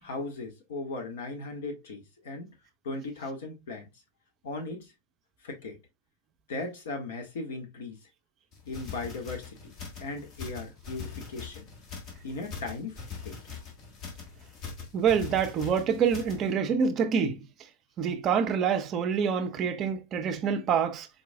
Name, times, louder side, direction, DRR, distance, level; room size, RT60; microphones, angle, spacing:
voice 1, 0.0-2.5 2.8-3.9 4.4-4.9 5.4-5.8 6.5-8.0 8.7-9.7 10.0-11.7 12.2-13.4, left 3 dB, 60° left, 1.5 m, -37 dB
sound 1, 8.5-16.5, left 5 dB, 35° left, 1.5 m, -42 dB
voice 2, 14.9-17.4 18.0-21.1, right 7 dB, 30° right, 0.5 m, -26 dB
4.5 x 4.2 x 2.3 m
figure-of-eight pair, 95°, 0 cm